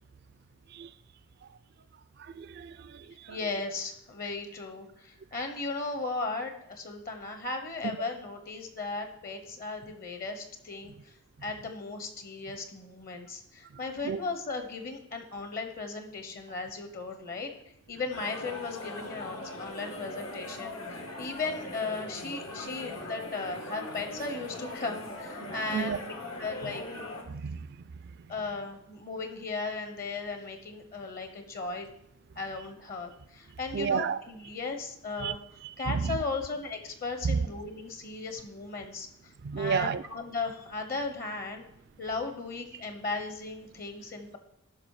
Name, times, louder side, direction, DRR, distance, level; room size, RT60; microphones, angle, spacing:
voice 1, 2.2-3.4 14.0-14.2 25.7-26.0 27.3-27.7 33.7-34.2 35.2-35.3 35.6-36.2 37.2-37.5 39.4-40.0, right 6 dB, 50° right, 0.3 m, -31 dB
voice 2, 3.3-11.1 11.4-26.8 28.3-31.9 32.4-35.4 35.8-41.7 42.0-44.4, left 3 dB, 45° left, 0.9 m, -36 dB
sound 1, 18.1-27.2, left 1 dB, 80° left, 1.9 m, -40 dB
13.5 x 5.9 x 4.8 m
head